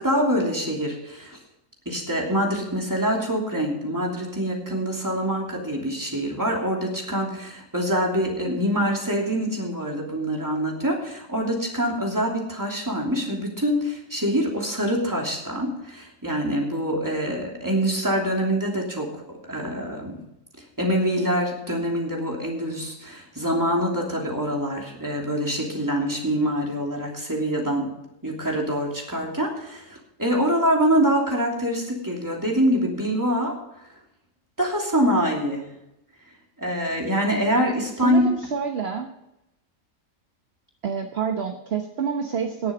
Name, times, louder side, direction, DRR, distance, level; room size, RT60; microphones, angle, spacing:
voice 1, 0.0-1.4 1.8-20.2 20.8-27.9 28.2-33.6 34.6-35.7 36.6-38.2, equal, 15° right, -1 dB, 2.9 m, -25 dB
voice 2, 38.0-39.1 40.8-42.7, right 6 dB, 50° right, 4 dB, 1.2 m, -28 dB
18.5 x 7.2 x 5.2 m, 0.87 s
omnidirectional pair, 1.5 m